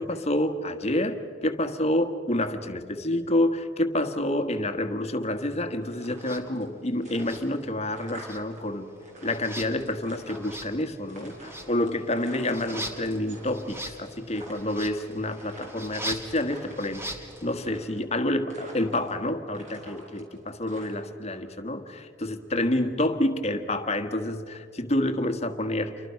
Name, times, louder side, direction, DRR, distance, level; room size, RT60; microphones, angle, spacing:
voice 1, 0.0-8.9 9.2-17.1 17.4-25.9, left 1 dB, 35° left, 8 dB, 1.5 m, -28 dB
sound 1, 5.8-6.7 7.0-8.6 8.9-10.7 11.1-13.5 13.7-14.0 14.3-16.0 16.3-17.1 17.6-18.2 18.5-19.2 19.5-21.3, right 1 dB, 40° right, 5.5 m, -46 dB
sound 2, 6.2-6.4 7.2-7.9 8.2-17.6, equal, 15° right, 2.0 m, -41 dB
29.0 x 24.5 x 5.8 m, 2.2 s
head